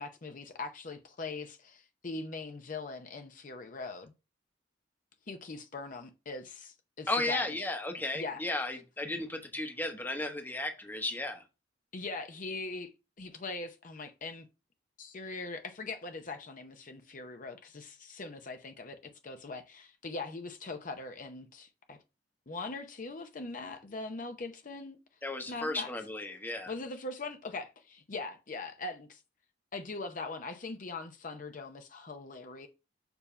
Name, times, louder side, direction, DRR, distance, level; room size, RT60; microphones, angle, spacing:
voice 1, 0.0-4.1 5.3-7.7 8.1-8.4 11.9-12.9 13.2-14.5 15.0-22.0 22.5-25.0 25.5-25.9 26.7-29.2 29.7-32.7, left 3 dB, 45° left, 0.7 m, -41 dB
voice 2, 7.1-11.4 25.2-26.7, left 2 dB, 10° left, 0.9 m, -34 dB
6.9 x 2.8 x 5.5 m
head